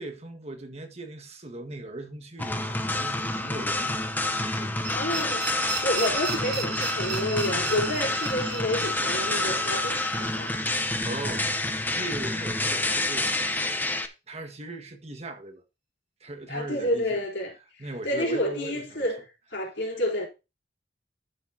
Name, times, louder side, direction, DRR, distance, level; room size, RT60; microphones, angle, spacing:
voice 1, 0.0-4.0 4.3-4.9 6.0-6.1 11.0-13.3 14.3-15.6 16.2-17.2 17.8-19.1 19.9-20.0, right 2 dB, 35° right, 1.6 m, -39 dB
sound 1, 2.4-14.1, left 2 dB, 10° left, 0.9 m, -28 dB
sound 2, 4.8-11.7, right 4 dB, 65° right, 2.8 m, -37 dB
voice 2, 4.9-5.5 5.8-10.5 16.5-17.5 18.0-19.2 19.5-20.3, left 1 dB, 80° left, 3.7 m, -29 dB
11.5 x 7.0 x 2.8 m
head